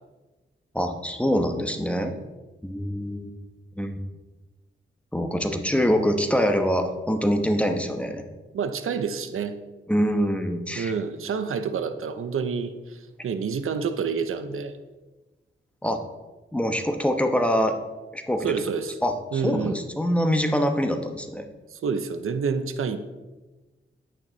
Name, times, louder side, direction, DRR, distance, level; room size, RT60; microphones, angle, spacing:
voice 1, 0.7-2.1 2.6-3.3 3.8-4.0 5.1-8.2 9.9-10.9 15.8-16.0 16.5-17.8 18.1-18.5 19.0-21.5, equal, 5° left, 5 dB, 1.1 m, -24 dB
voice 2, 1.9-2.2 8.5-9.6 10.8-14.7 18.4-19.0 19.3-19.8 21.7-23.0, right 5 dB, 90° right, 10 dB, 0.7 m, -28 dB
10.0 x 8.9 x 4.0 m, 1.2 s
wide cardioid pair, 90°, 21 cm